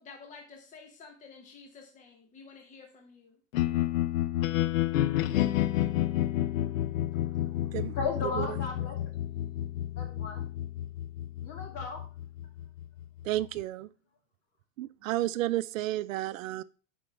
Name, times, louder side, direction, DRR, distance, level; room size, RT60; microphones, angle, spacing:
voice 1, 0.0-3.3, left 4 dB, 20° left, 1.1 m, -51 dB
sound 1, 3.5-13.6, left 13 dB, 80° left, 0.7 m, -30 dB
voice 2, 7.2-9.0 10.0-10.5 11.4-12.0, left 4 dB, 40° left, 2.7 m, -36 dB
voice 3, 13.2-13.9 14.8-16.6, right 15 dB, 80° right, 0.5 m, -31 dB
11.0 x 5.2 x 3.4 m
supercardioid pair, 140°, 40 cm